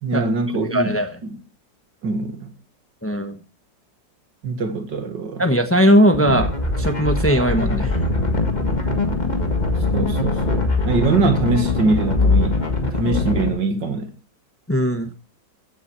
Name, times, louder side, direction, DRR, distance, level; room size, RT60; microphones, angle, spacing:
voice 1, 0.0-1.0 1.3-1.4 2.0-2.5 4.4-5.5 9.9-12.6 12.9-14.1, right 3 dB, 80° right, 2.6 m, -23 dB
voice 2, 0.6-1.1 3.0-3.4 5.4-6.5 6.8-8.0 14.7-15.1, equal, 10° left, 1.0 m, -18 dB
sound 1, 6.1-13.5, left 3 dB, 25° left, 1.7 m, -21 dB
15.5 x 7.4 x 6.0 m
omnidirectional pair, 1.9 m